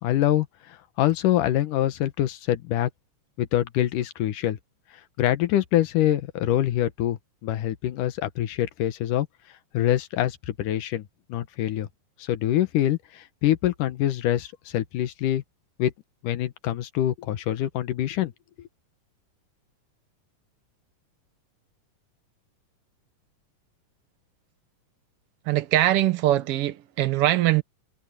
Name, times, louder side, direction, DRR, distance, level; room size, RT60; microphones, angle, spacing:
voice 1, 0.0-0.5 1.0-2.9 3.4-4.6 5.2-9.3 9.7-11.0 11.3-11.9 12.2-15.4 15.8-15.9 16.2-18.3, left 13 dB, 75° left, 2.6 m, -25 dB
voice 2, 25.5-27.6, right 14 dB, 85° right, 1.3 m, -22 dB
omnidirectional pair, 3.9 m